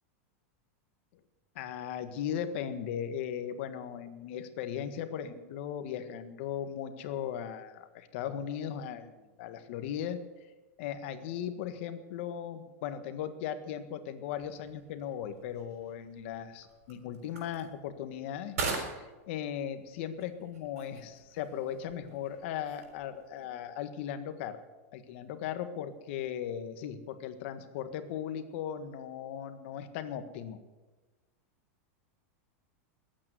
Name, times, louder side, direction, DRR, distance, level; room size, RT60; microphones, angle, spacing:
voice 1, 1.6-10.2 10.8-18.5 18.8-24.6 24.9-30.6, left 9 dB, 50° left, 9 dB, 1.6 m, -37 dB
sound 1, 14.2-23.4, right 4 dB, 90° right, 6.0 m, -43 dB
20.5 x 9.0 x 7.7 m, 1.2 s
supercardioid pair, 160°, 8 cm